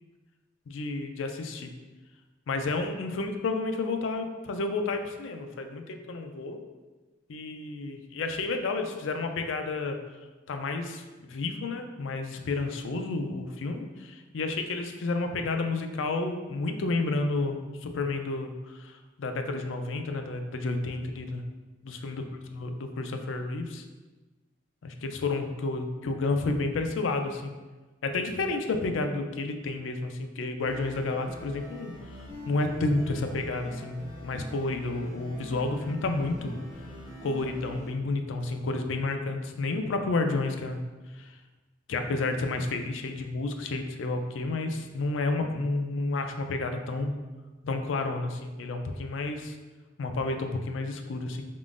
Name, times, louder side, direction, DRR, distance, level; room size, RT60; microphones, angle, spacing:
voice 1, 0.7-1.7 2.5-6.6 7.3-10.0 10.5-21.4 21.8-22.2 22.5-23.8 24.8-27.5 28.0-31.9 32.5-36.6 37.2-40.8 41.2-41.3 41.9-47.1 47.6-49.5 50.0-51.4, left 3 dB, 80° left, 6 dB, 0.4 m, -31 dB
sound 1, 30.6-37.9, equal, 45° right, 1.2 m, -44 dB
4.0 x 3.7 x 2.4 m, 1.2 s
head